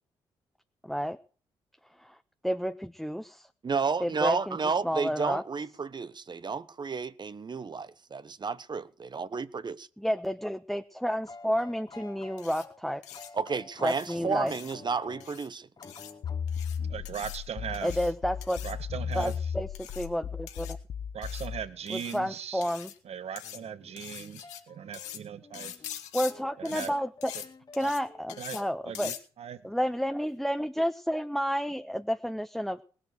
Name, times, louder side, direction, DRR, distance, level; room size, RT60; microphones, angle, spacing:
voice 1, 0.8-1.2 2.0-2.2 2.4-3.5 4.0-4.6 4.8-5.4 10.0-13.3 13.8-14.5 17.8-18.6 19.1-20.8 21.9-22.9 26.1-27.3 27.7-29.1 29.6-32.8, equal, ahead, 1.3 m, -31 dB
voice 2, 3.6-9.9 13.3-15.7, right 5 dB, 40° right, 1.1 m, -32 dB
sound 1, 11.1-15.4 15.8-17.0 18.7-18.9 19.9-20.1 20.5-20.8 23.1-28.4, left 3 dB, 35° left, 1.8 m, -51 dB
sound 2, 12.4-12.6 13.0-13.3 13.9-14.1 14.5-14.7 15.2-15.5 15.8-16.1 16.5-16.8 17.0-17.4 17.7-18.1 18.4-18.7 19.1-19.4 19.7-20.1 20.5-20.7 21.2-21.5 21.9-22.2 22.6-23.0 23.4-23.6 24.0-24.6 24.9-25.2 25.5-26.3 26.6-26.9 27.2-27.5 27.7-28.0 28.3-28.6 28.9-29.2, left 11 dB, 75° left, 2.3 m, -43 dB
sound 3, 16.2-21.7, left 7 dB, 60° left, 1.3 m, -35 dB
voice 3, 16.8-18.0 18.6-19.5 21.1-22.6 23.0-25.7 26.6-26.9 27.3-27.4 27.8-27.9 28.4-28.6 28.9-29.7, right 8 dB, 60° right, 2.0 m, -39 dB
19.5 x 7.8 x 8.0 m
hypercardioid pair, 45°, 12 cm